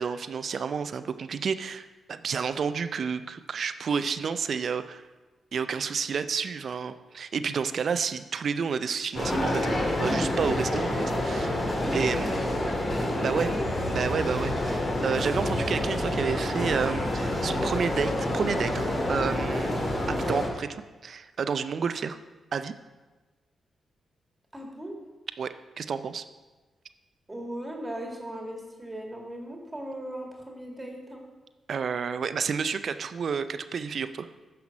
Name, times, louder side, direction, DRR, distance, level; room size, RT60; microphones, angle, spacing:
voice 1, 0.0-5.0 5.5-11.6 11.9-12.4 13.2-13.5 13.9-19.8 20.1-20.7 21.0-22.2 22.5-22.7 25.4-26.2 31.7-34.3, right 6 dB, 65° right, 11 dB, 0.4 m, -30 dB
sound 1, 9.1-20.5, left 1 dB, 45° left, 2.2 m, -28 dB
voice 2, 11.8-13.4 24.5-25.0 27.3-31.2, right 1 dB, 20° right, 0 dB, 2.0 m, -38 dB
9.4 x 5.8 x 4.9 m, 1.2 s
supercardioid pair, 50°, 0 cm